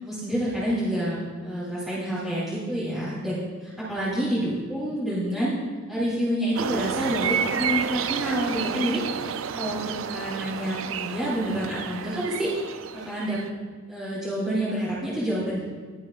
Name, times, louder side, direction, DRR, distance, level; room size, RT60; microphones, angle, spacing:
voice 1, 0.0-5.5 5.9-9.0 9.5-9.8 10.1-12.5 12.9-13.4 13.9-15.6, equal, ahead, -11 dB, 3.2 m, -28 dB
sound 1, 6.6-13.5, right 7 dB, 70° right, 0.4 m, -30 dB
20.5 x 7.3 x 2.4 m, 1.5 s
head